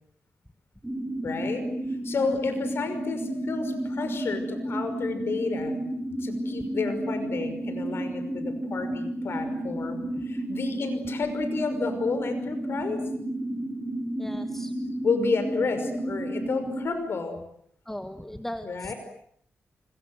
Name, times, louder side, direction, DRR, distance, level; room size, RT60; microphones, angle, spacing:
sound 1, 0.8-16.9, right 1 dB, 10° right, 4.8 m, -32 dB
voice 1, 1.2-1.7 2.0-5.8 6.2-13.0 15.0-17.4 18.6-18.9, left 4 dB, 60° left, 9 dB, 5.6 m, -31 dB
voice 2, 14.2-14.7 17.9-18.9, left 1 dB, 5° left, 8 dB, 1.6 m, -37 dB
28.5 x 24.5 x 7.9 m, 0.68 s
wide cardioid pair, 110°, 5 cm